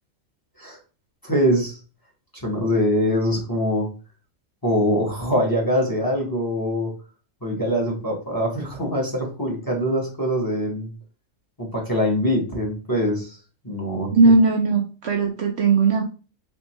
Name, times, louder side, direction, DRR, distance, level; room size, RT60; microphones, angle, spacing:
voice 1, 1.2-1.8 2.4-3.9 4.6-6.9 7.4-10.9 11.6-13.4 13.6-14.1, equal, 15° left, -2 dB, 1.0 m, -23 dB
voice 2, 14.1-16.0, right 4 dB, 65° right, 2 dB, 0.7 m, -18 dB
3.5 x 3.5 x 3.0 m, 0.35 s
omnidirectional pair, 1.4 m